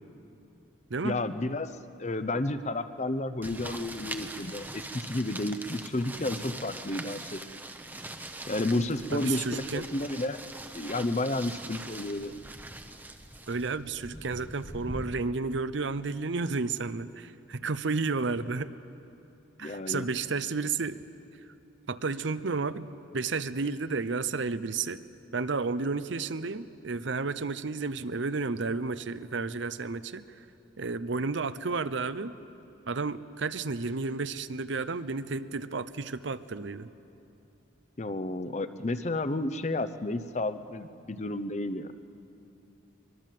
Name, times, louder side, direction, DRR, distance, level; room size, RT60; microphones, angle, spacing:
voice 1, 1.0-1.7 2.0-7.4 8.5-10.4 10.7-12.3 19.6-20.1 38.0-41.9, left 2 dB, 35° left, 11 dB, 0.7 m, -31 dB
sound 1, 3.4-15.1, right 2 dB, 10° right, 0.9 m, -42 dB
voice 2, 9.1-9.9 13.5-18.7 19.6-21.0 21.9-22.9 23.1-25.0 25.3-30.2 30.8-32.3 32.9-36.9, right 4 dB, 70° right, 14 dB, 0.7 m, -32 dB
23.5 x 22.5 x 7.6 m, 2.8 s
head